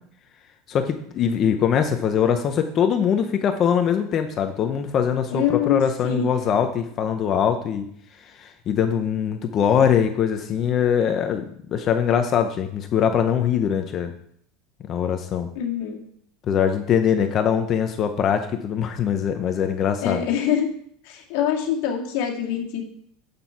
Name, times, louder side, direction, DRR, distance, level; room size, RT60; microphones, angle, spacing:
voice 1, 0.7-7.9 8.2-14.1 14.9-15.5 16.5-20.2, left 8 dB, 30° left, 6 dB, 0.7 m, -22 dB
voice 2, 5.3-5.8 6.0-6.3 15.6-16.0 20.0-20.7 21.0-22.8, left 9 dB, 60° left, 1 dB, 2.0 m, -24 dB
7.8 x 6.8 x 5.7 m, 0.66 s
supercardioid pair, 170°, 0 cm